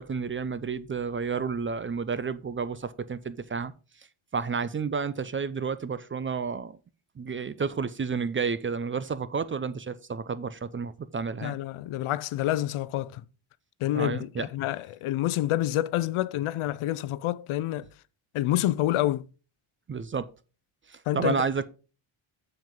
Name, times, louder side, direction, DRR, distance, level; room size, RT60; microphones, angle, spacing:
voice 1, 0.0-3.7 4.0-4.1 4.3-6.8 7.2-11.6 13.9-14.5 19.9-20.3 20.9-21.7, right 5 dB, 25° right, 0.4 m, -31 dB
voice 2, 11.4-13.2 13.8-17.9 18.3-19.2 21.1-21.3, left 14 dB, 80° left, 0.6 m, -28 dB
7.6 x 7.3 x 3.8 m
cardioid pair, 130°, 49 cm